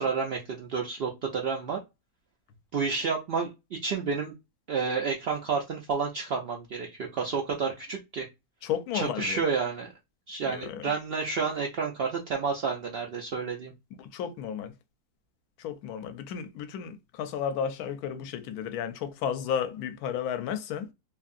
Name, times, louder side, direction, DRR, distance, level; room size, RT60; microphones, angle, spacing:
voice 1, 0.0-1.8 2.7-4.4 4.7-8.2 8.9-9.9 10.3-13.7, right 5 dB, 80° right, 0.5 m, -30 dB
voice 2, 8.6-9.4 10.5-10.9 14.0-14.7 15.6-20.9, left 8 dB, 75° left, 1.0 m, -33 dB
2.8 x 2.6 x 2.4 m
omnidirectional pair, 1.6 m